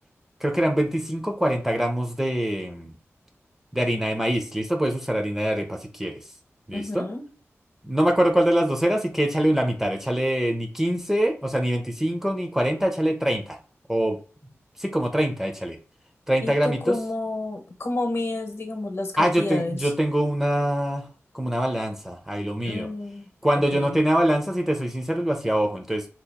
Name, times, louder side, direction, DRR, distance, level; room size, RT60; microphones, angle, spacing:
voice 1, 0.4-2.9 3.7-6.2 6.7-7.1 7.8-13.6 13.9-14.2 14.8-15.8 16.3-17.0 19.2-21.1 21.3-22.9 23.4-26.1, right 1 dB, 5° right, 4 dB, 0.6 m, -24 dB
voice 2, 6.7-7.2 16.4-19.8 22.6-23.3 23.7-24.0, left 2 dB, 55° left, 5 dB, 0.9 m, -30 dB
2.8 x 2.4 x 3.5 m, 0.39 s
wide cardioid pair, 90°, 5 cm